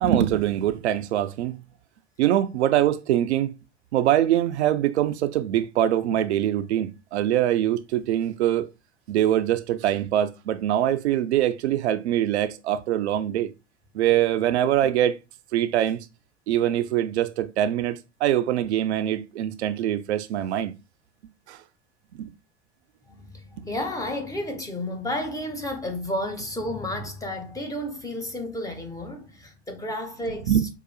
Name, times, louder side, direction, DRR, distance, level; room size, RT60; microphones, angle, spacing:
voice 1, 0.0-1.6 2.2-3.5 3.9-8.7 9.1-13.5 13.9-15.2 15.5-16.0 16.5-20.7 21.5-21.6 22.1-22.3 30.5-30.7, right 11 dB, 65° right, 0.5 m, -23 dB
voice 2, 23.1-30.6, left 1 dB, 10° left, 0.7 m, -32 dB
4.7 x 2.4 x 2.2 m
figure-of-eight pair, 75°, 35 cm